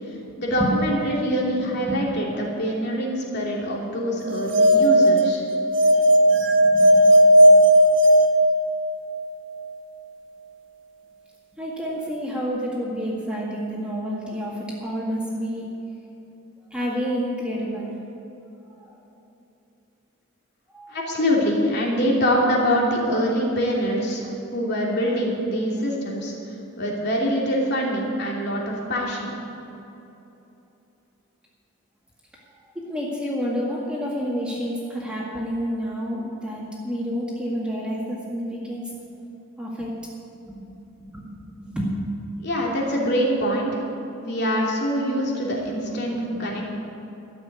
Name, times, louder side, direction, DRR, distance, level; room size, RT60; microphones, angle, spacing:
voice 1, 0.4-5.4 20.9-26.3 26.8-29.3 42.4-43.8 44.2-46.7, equal, 55° left, -2 dB, 3.0 m, -24 dB
sound 1, 4.3-9.1, equal, 65° right, 1.2 m, -16 dB
voice 2, 6.6-7.0 7.6-7.7 11.6-15.6 16.7-17.9 20.7-20.9 32.8-38.9 39.6-39.9 40.5-40.6 41.1-41.3 41.6-41.9 46.3-46.7, equal, 5° right, -5 dB, 2.0 m, -29 dB
13.5 x 7.8 x 9.3 m, 3.0 s
head